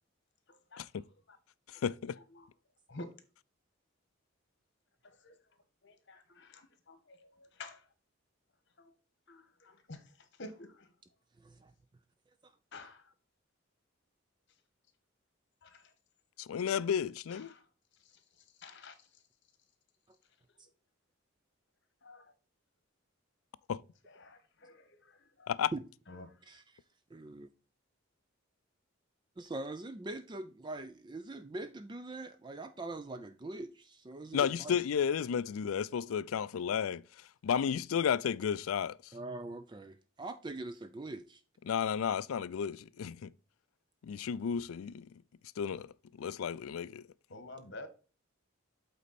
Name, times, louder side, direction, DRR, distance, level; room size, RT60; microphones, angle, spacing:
voice 1, 0.7-1.0 2.4-2.5 2.9-3.1 5.0-5.4 5.8-7.8 8.8-8.9 9.3-10.0 10.4-10.9 12.7-13.0 15.6-15.9 17.3-17.6 18.6-18.9 22.0-22.2 24.2-25.5 26.1-26.3 47.3-47.9, left 2 dB, 55° left, 1.3 m, -50 dB
voice 2, 1.7-2.2 16.4-17.5 23.7-23.8 25.5-25.7 34.3-37.0 37.4-39.0 41.7-43.3 44.0-45.1 45.6-45.9 46.2-47.1, left 7 dB, 80° left, 0.4 m, -32 dB
voice 3, 11.4-11.7 12.4-12.5 25.7-25.8 26.4-26.8 27.1-27.5 29.4-34.8 39.1-41.4, right 2 dB, 20° right, 0.3 m, -43 dB
8.3 x 4.2 x 4.1 m
head